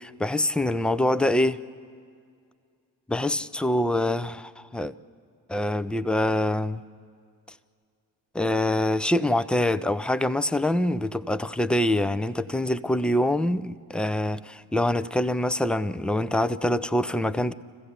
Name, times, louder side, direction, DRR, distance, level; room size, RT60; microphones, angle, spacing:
voice 1, 0.0-1.6 3.1-4.9 5.5-6.8 8.3-17.5, left 1 dB, ahead, 0.5 m, -25 dB
26.0 x 15.5 x 8.0 m
hypercardioid pair, 40°, 49 cm